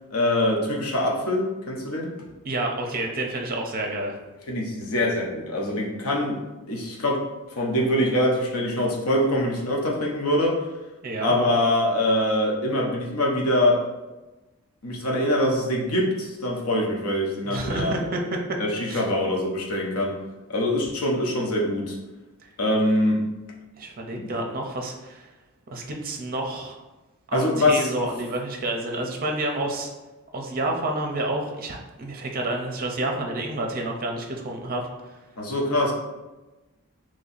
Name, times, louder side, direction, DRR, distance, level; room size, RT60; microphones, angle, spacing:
voice 1, 0.1-2.1 4.5-7.2 7.6-10.6 11.2-13.8 14.8-17.9 18.6-20.1 20.5-22.0 22.6-23.2 24.1-24.3 27.3-27.9 35.4-35.9, left 1 dB, 75° left, -1 dB, 0.8 m, -24 dB
voice 2, 2.4-4.2 11.0-11.3 17.4-18.6 18.9-19.1 22.4-22.5 23.8-25.3 25.7-26.8 27.3-29.9 30.3-35.2, right 2 dB, 40° right, 2 dB, 0.6 m, -29 dB
3.1 x 2.7 x 4.0 m, 1.1 s
head